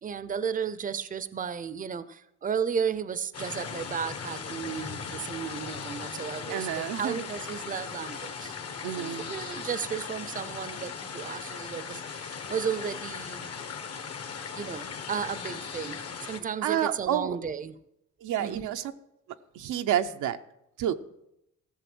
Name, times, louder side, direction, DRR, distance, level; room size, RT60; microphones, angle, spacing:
voice 1, 0.0-8.5 9.0-13.5 14.6-17.8 18.4-18.7, right 7 dB, 25° right, 15 dB, 0.6 m, -34 dB
sound 1, 3.3-16.4, left 6 dB, 55° left, 1.4 m, -38 dB
voice 2, 6.5-7.3 8.8-9.3 16.6-17.4 18.2-18.9 19.5-20.4 20.8-20.9, right 10 dB, 80° right, 7 dB, 0.7 m, -29 dB
15.0 x 6.9 x 6.1 m, 0.83 s
cardioid pair, 90°, 30 cm